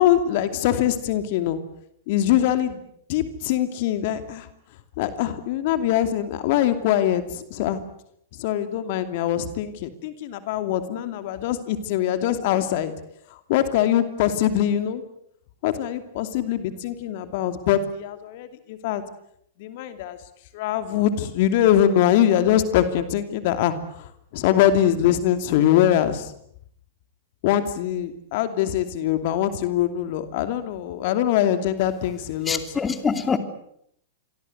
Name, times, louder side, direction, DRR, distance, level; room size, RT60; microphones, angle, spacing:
voice 1, 0.0-1.6 2.1-2.8 3.1-4.5 5.0-7.8 8.4-12.9 13.5-15.0 15.6-19.0 19.6-20.2 20.5-26.3 27.4-32.6, left 11 dB, 55° left, 10 dB, 2.7 m, -23 dB
voice 2, 32.5-33.4, left 5 dB, 20° left, 9 dB, 2.8 m, -24 dB
28.5 x 23.5 x 8.1 m, 0.71 s
hypercardioid pair, 110°, 0 cm